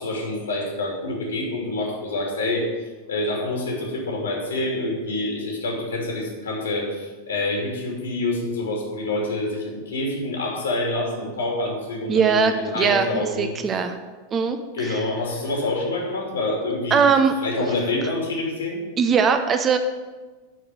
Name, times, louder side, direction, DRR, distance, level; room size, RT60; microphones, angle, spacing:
voice 1, 0.0-2.7 3.1-13.5 14.7-17.0 17.4-18.8, left 2 dB, 70° left, 0 dB, 2.9 m, -27 dB
voice 2, 12.1-14.0 14.3-14.6 14.8-14.9 16.9-17.7 19.0-19.8, right 6 dB, 25° right, 8 dB, 0.8 m, -20 dB
11.0 x 4.8 x 7.9 m, 1.3 s
figure-of-eight pair, 90°, 0 cm